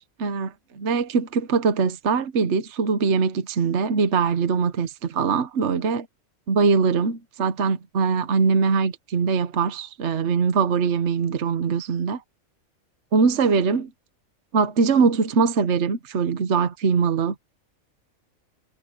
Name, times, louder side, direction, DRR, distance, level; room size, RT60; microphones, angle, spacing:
voice 1, 0.0-6.1 6.5-12.2 13.1-13.9 14.5-17.3, right 5 dB, 55° right, 1.3 m, -22 dB
omnidirectional pair, 1.5 m